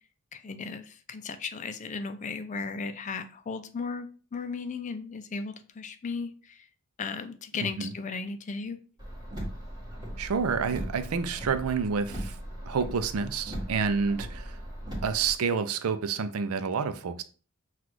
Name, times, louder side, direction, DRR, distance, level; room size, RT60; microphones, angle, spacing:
voice 1, 0.3-6.7 7.0-8.8, left 4 dB, 35° left, 0.4 m, -36 dB
voice 2, 7.6-7.9 10.2-12.4 12.7-14.6 15.0-17.2, right 5 dB, 90° right, 0.5 m, -29 dB
Car, 9.0-15.3, equal, 20° right, 1.4 m, -38 dB
5.8 x 2.4 x 3.1 m
head